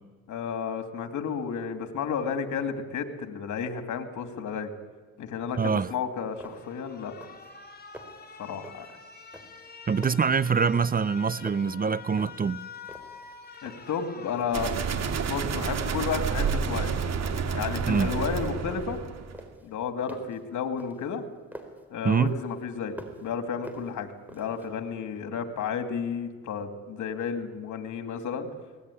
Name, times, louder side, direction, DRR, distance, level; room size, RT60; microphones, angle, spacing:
voice 1, 0.3-4.7 5.2-7.1 8.4-8.9 13.6-14.7 15.2-16.9 17.5-19.0 19.6-21.2 21.9-28.5, left 6 dB, 75° left, 2.7 m, -32 dB
voice 2, 5.6-5.9 9.9-12.6 17.9-18.1 22.0-22.3, right 5 dB, 30° right, 0.7 m, -24 dB
sound 1, 5.9-6.0 6.4-6.8 7.1-7.5 7.8-8.3 8.6-9.0 9.3-11.2 11.5-12.5 12.8-14.0 14.4-14.6 15.0-15.5 15.8-16.7 17.2-17.6 17.9-19.0 19.3-21.8 22.3-23.3 23.6-24.7, right 1 dB, 5° right, 4.3 m, -47 dB
Alarm, 6.3-17.3, left 5 dB, 30° left, 3.3 m, -47 dB
sound 2, 14.5-19.4, right 6 dB, 60° right, 2.5 m, -29 dB
24.0 x 19.0 x 10.0 m
cardioid pair, 90°, 30 cm